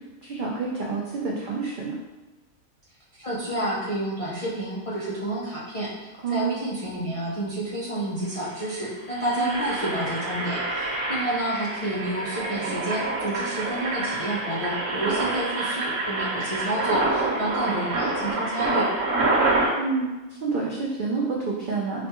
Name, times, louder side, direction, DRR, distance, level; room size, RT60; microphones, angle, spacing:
voice 1, 0.2-2.0 6.2-6.6 9.4-9.6 19.8-22.1, right 4 dB, 90° right, -3 dB, 0.4 m, -28 dB
voice 2, 3.2-18.9, right 1 dB, 60° left, -8 dB, 0.3 m, -29 dB
Engine, 8.0-8.1 8.3-8.5 9.0-19.7, right 2 dB, 65° right, 1.2 m, -27 dB
5.0 x 2.2 x 2.9 m, 1.1 s
omnidirectional pair, 1.5 m